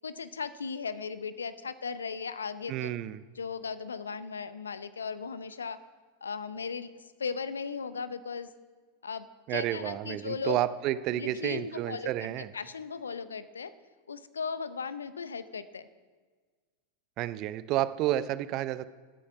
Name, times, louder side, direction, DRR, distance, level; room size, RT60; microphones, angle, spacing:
voice 1, 0.0-2.9 3.4-5.8 6.2-6.9 7.2-8.5 9.0-10.6 11.1-13.7 14.1-15.9, left 5 dB, 70° left, 14 dB, 0.8 m, -37 dB
voice 2, 2.7-3.2 9.5-12.5 17.2-18.8, right 13 dB, 40° right, 15 dB, 0.6 m, -30 dB
17.0 x 8.6 x 5.6 m, 1.5 s
figure-of-eight pair, 90°, 0 cm